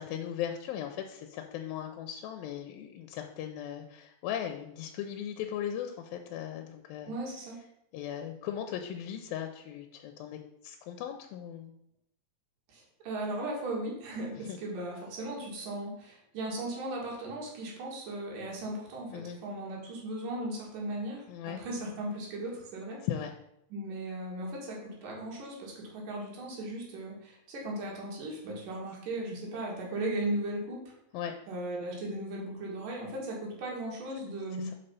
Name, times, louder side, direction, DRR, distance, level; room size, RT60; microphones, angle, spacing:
voice 1, 0.0-7.1 7.9-11.7 14.5-14.6 19.1-19.4 21.3-21.6 23.0-23.3 31.1-31.3 34.6-34.7, left 10 dB, 85° left, 5 dB, 2.4 m, -38 dB
voice 2, 7.1-7.6 12.7-23.0 23.7-30.8 31.5-34.7, right 1 dB, 65° right, -2 dB, 3.4 m, -37 dB
5.5 x 5.4 x 5.5 m, 0.78 s
omnidirectional pair, 4.1 m